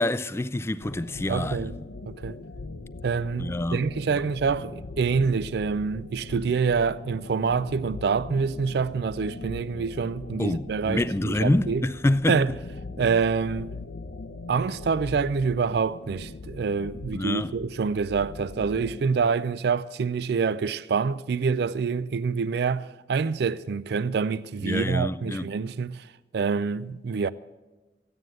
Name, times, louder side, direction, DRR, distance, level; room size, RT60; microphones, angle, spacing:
voice 1, 0.0-1.7 3.4-3.8 10.4-12.4 17.1-17.5 24.6-25.5, left 1 dB, 15° left, 0.4 m, -26 dB
sound 1, 0.8-19.3, left 2 dB, 80° left, 0.8 m, -40 dB
voice 2, 1.3-1.7 2.1-2.4 3.0-11.8 12.3-12.5 13.0-13.7 14.5-26.1 26.3-27.3, right 5 dB, 65° right, 0.4 m, -26 dB
15.0 x 9.5 x 7.7 m
head